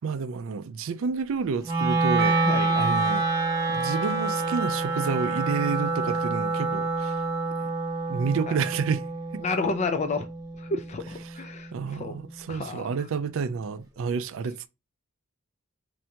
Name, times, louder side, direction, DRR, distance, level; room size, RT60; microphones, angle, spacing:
voice 1, 0.0-2.5 2.8-3.3 3.7-7.1 7.6-7.7 8.1-9.4 11.3-11.4 11.7-14.7, right 5 dB, 65° right, 0.4 m, -30 dB
Wind instrument woodwind instrument, 1.6-11.8, right 3 dB, 15° right, 0.9 m, -28 dB
Percussion, 2.2-7.1, right 2 dB, 45° right, 0.8 m, -37 dB
voice 2, 2.4-2.8 8.5-8.6 9.4-10.3 10.6-12.2 12.5-12.9, left 3 dB, 30° left, 0.3 m, -30 dB
sound 1, 4.0-8.1, right 4 dB, 65° left, 1.1 m, -37 dB
4.5 x 2.6 x 2.8 m
head